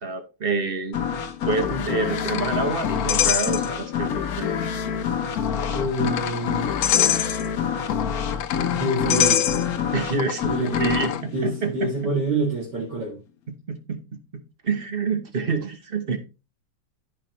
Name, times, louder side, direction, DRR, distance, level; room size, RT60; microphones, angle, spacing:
voice 1, 0.0-1.0 1.5-4.5 9.9-11.9 13.5-16.2, right 4 dB, 40° right, 8 dB, 0.9 m, -28 dB
sound 1, 0.9-12.4, left 7 dB, 55° left, 1.2 m, -27 dB
sound 2, 1.4-4.1 4.4-4.5 5.3-11.2, left 11 dB, 80° left, 1.4 m, -27 dB
voice 2, 5.7-6.7 8.6-9.4 10.5-13.2, right 1 dB, 60° right, -5 dB, 3.2 m, -27 dB
14.5 x 5.4 x 3.1 m, 0.29 s
omnidirectional pair, 2.1 m